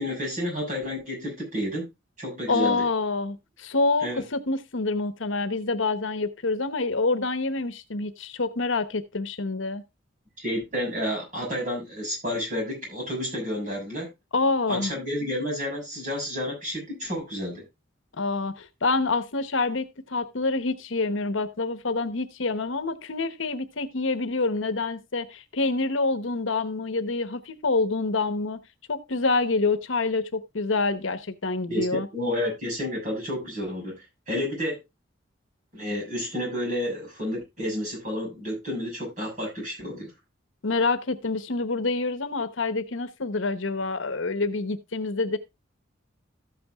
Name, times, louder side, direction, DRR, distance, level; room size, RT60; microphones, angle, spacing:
voice 1, 0.0-1.9 2.2-2.8 4.0-4.2 10.4-14.1 14.7-17.6 31.7-34.8 35.7-40.1, left 1 dB, 40° right, 6.4 m, -30 dB
voice 2, 2.5-9.8 14.3-14.9 18.2-28.6 28.9-32.1 40.6-45.4, left 3 dB, 75° left, 1.0 m, -27 dB
14.0 x 8.6 x 2.3 m
head